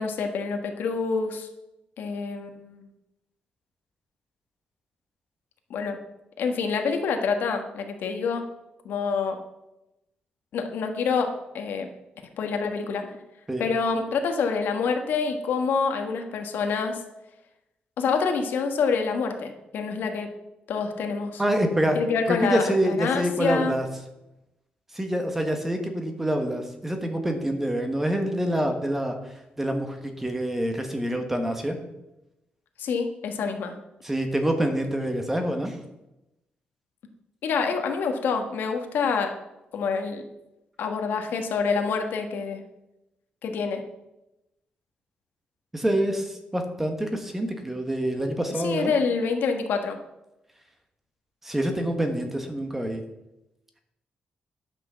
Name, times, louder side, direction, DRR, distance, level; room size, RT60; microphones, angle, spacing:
voice 1, 0.0-1.5 2.0-2.8 5.7-6.0 6.4-8.4 8.8-9.4 10.5-11.9 12.4-13.1 13.6-17.0 18.0-20.3 20.7-21.4 21.9-23.8 32.8-33.7 37.4-39.3 39.7-40.2 40.8-42.6 43.4-43.8 48.6-50.0, left 5 dB, 90° left, 5 dB, 1.5 m, -27 dB
voice 2, 21.4-22.0 22.3-23.9 24.9-31.8 34.0-35.8 45.7-48.9 51.4-53.0, right 1 dB, 10° right, 5 dB, 1.2 m, -26 dB
10.5 x 6.2 x 6.9 m, 0.92 s
wide cardioid pair, 175°, 3 cm